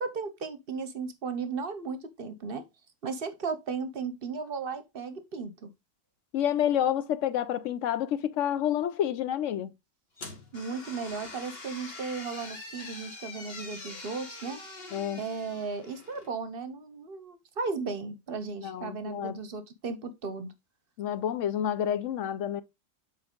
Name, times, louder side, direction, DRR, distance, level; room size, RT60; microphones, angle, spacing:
voice 1, 0.0-2.7 3.0-5.7 10.5-14.6 15.2-20.5, right 4 dB, 55° right, 0.8 m, -35 dB
voice 2, 6.3-9.7 14.9-15.2 18.6-19.4 21.0-22.6, left 10 dB, 75° left, 0.9 m, -29 dB
sound 1, 10.2-16.3, left 3 dB, 50° left, 1.7 m, -44 dB
7.4 x 4.5 x 3.6 m
omnidirectional pair, 1.3 m